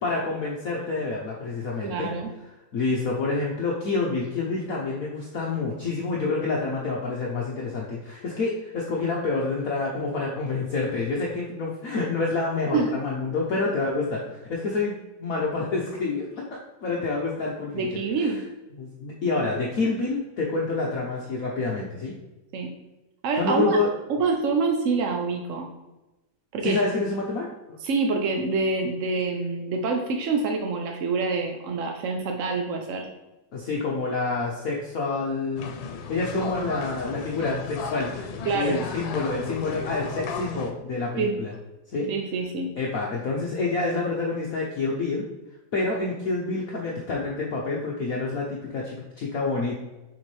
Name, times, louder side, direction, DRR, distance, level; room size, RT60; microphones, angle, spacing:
voice 1, 0.0-2.1 2.7-18.4 18.8-22.2 23.4-23.9 26.6-27.5 33.5-35.7 36.1-41.5 41.9-42.1 42.8-45.2 45.7-49.8, left 3 dB, 55° left, -3 dB, 1.1 m, -28 dB
voice 2, 1.8-2.3 12.7-13.0 17.7-18.4 22.5-22.7 23.2-23.8 24.1-25.7 26.5-26.8 27.8-33.1 38.5-38.8 41.2-41.4 42.1-42.7, right 4 dB, 70° right, 2 dB, 0.7 m, -26 dB
sound 1, 35.6-40.7, left 5 dB, 80° left, 1.4 m, -35 dB
7.0 x 4.4 x 3.3 m, 1.1 s
omnidirectional pair, 2.1 m